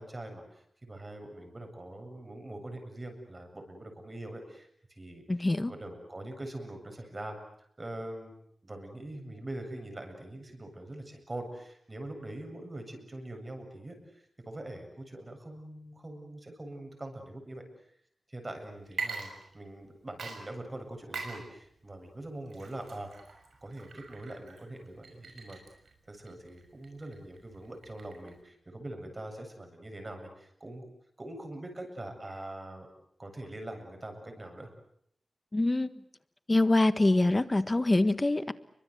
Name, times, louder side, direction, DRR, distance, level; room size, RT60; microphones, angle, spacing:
voice 1, 0.0-5.2 5.7-7.4 7.8-8.3 8.6-17.6 18.3-23.1 23.6-25.6 26.1-30.8 31.2-32.9 33.2-34.7, right 1 dB, 25° right, 5 dB, 7.7 m, -43 dB
voice 2, 5.3-5.7 35.5-35.9 36.5-38.5, left 2 dB, 25° left, 13 dB, 1.5 m, -25 dB
Water / Liquid, 18.8-19.9 20.2-28.4, right 4 dB, 90° right, 6.1 m, -43 dB
29.5 x 24.0 x 8.1 m, 0.68 s
wide cardioid pair, 100°, 0 cm